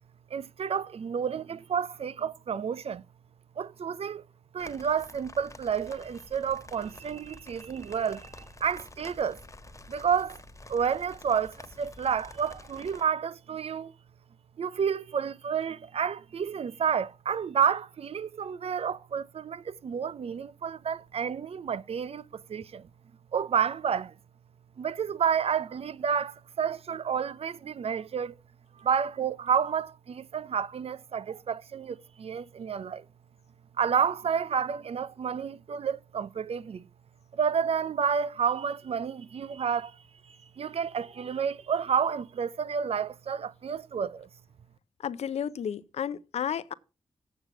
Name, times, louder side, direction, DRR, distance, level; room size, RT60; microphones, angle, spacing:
voice 1, 0.3-3.0 3.6-4.2 4.5-9.4 9.9-10.4 10.7-13.9 14.6-22.9 23.3-24.1 24.8-28.4 28.8-33.1 33.8-36.9 37.3-44.3, right 7 dB, 65° right, 0.5 m, -30 dB
sound 1, 4.6-13.0, left 2 dB, 30° left, 1.4 m, -49 dB
voice 2, 45.0-46.7, left 8 dB, 80° left, 0.6 m, -32 dB
8.0 x 7.4 x 5.9 m
supercardioid pair, 40°, 11 cm